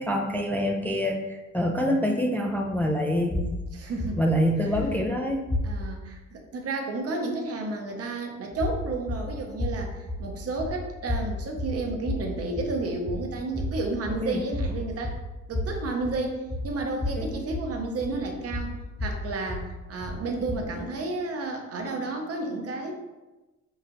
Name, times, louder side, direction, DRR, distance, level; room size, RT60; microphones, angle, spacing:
voice 1, 0.0-3.6 4.2-5.4 14.2-14.4 17.1-17.4, equal, 5° left, 1 dB, 0.3 m, -26 dB
sound 1, 3.3-6.1 8.5-20.9, left 1 dB, 50° left, 1.4 m, -33 dB
voice 2, 3.7-4.2 4.7-5.1 5.6-15.2 15.5-18.7 19.0-22.9, right 3 dB, 50° right, 2 dB, 0.8 m, -32 dB
5.5 x 2.4 x 3.0 m, 1.1 s
cardioid pair, 90°, 30 cm